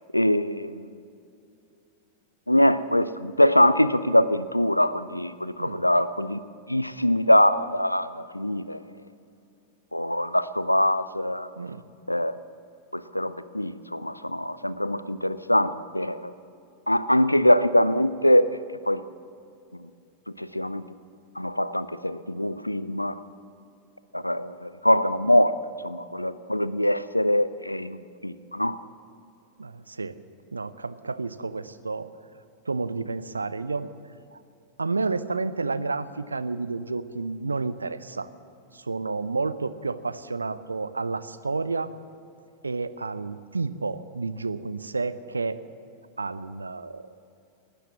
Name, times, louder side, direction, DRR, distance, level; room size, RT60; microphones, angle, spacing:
voice 1, 0.1-0.8 2.5-6.4 6.7-8.8 9.9-11.5 12.1-12.3 12.9-16.3 16.9-19.0 20.4-20.8 21.4-23.2 24.1-25.5 25.8-28.8, left 1 dB, 85° left, 15 dB, 0.5 m, -23 dB
voice 2, 29.6-30.1 30.5-32.1 32.7-33.9 34.3-34.4 34.8-38.3 38.7-41.9 42.6-45.6 46.2-47.1, right 3 dB, 80° right, 13 dB, 0.6 m, -30 dB
19.0 x 10.0 x 7.3 m, 2.5 s
figure-of-eight pair, 90°, 0 cm